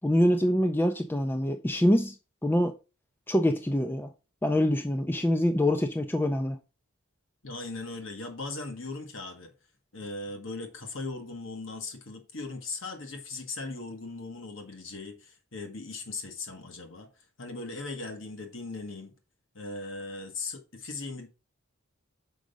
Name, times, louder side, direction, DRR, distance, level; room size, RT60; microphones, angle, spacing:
voice 1, 0.0-2.2 2.4-2.7 3.3-4.1 4.4-6.6, left 1 dB, 10° left, 0.4 m, -25 dB
voice 2, 7.4-9.5 9.9-19.1 19.5-21.3, left 3 dB, 65° left, 1.4 m, -38 dB
6.3 x 5.0 x 5.2 m
head